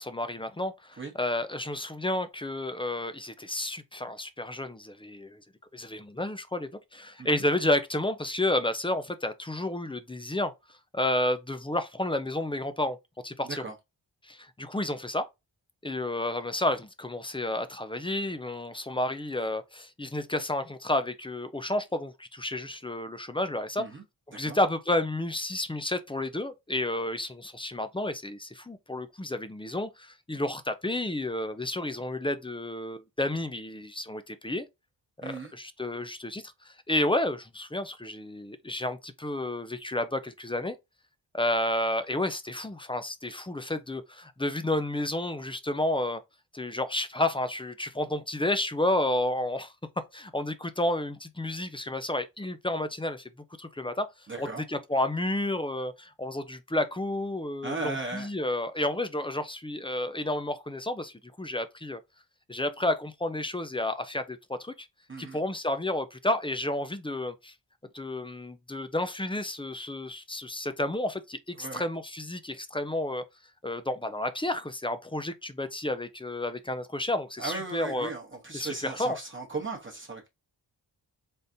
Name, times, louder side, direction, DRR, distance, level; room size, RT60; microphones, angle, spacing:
voice 1, 0.0-5.4 5.7-10.5 10.9-13.0 13.2-13.6 14.2-15.3 15.8-23.9 24.4-34.7 35.2-40.8 41.3-46.2 46.5-49.7 50.1-53.3 53.6-54.1 54.4-62.0 62.5-64.9 65.2-67.5 67.9-73.2 73.6-78.1 78.5-79.2, left 1 dB, 15° left, 0.4 m, -31 dB
voice 2, 13.4-13.8 23.8-24.0 24.3-24.6 35.2-35.5 54.3-54.6 57.6-58.3 65.1-65.4 71.6-71.8 77.4-80.3, right 3 dB, 25° right, 0.9 m, -37 dB
3.9 x 3.5 x 2.6 m
wide cardioid pair, 130°, 44 cm